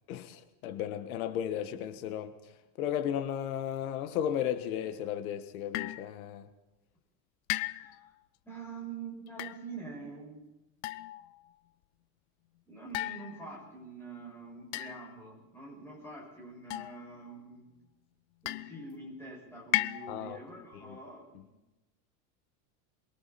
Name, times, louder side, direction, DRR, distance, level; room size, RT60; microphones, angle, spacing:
voice 1, 0.1-2.3 2.8-6.5 20.1-20.4 20.7-21.0, left 10 dB, 90° left, 9 dB, 1.6 m, -34 dB
sound 1, 5.7-6.1 7.5-8.1 9.3-9.6 10.8-11.4 12.9-13.7 14.7-15.3 16.7-17.3 18.5-19.0 19.7-20.4, left 18 dB, 55° left, 0.6 m, -35 dB
voice 2, 8.4-10.4 12.7-17.6 18.4-21.4, right 4 dB, 5° left, -3 dB, 6.7 m, -45 dB
28.0 x 22.0 x 4.3 m, 1.0 s
cardioid pair, 180°, 42 cm